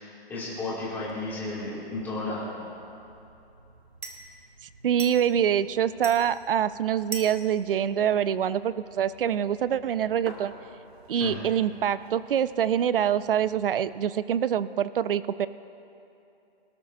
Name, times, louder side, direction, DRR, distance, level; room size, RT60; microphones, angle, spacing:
voice 1, 0.0-2.5 11.1-11.4, left 2 dB, 5° left, -8 dB, 2.3 m, -33 dB
sound 1, 1.1-13.9, right 3 dB, 85° right, 2.5 m, -47 dB
voice 2, 4.8-10.5 11.1-15.5, right 9 dB, 60° right, 16 dB, 0.5 m, -25 dB
25.5 x 13.5 x 2.6 m, 2.8 s
hypercardioid pair, 170°, 31 cm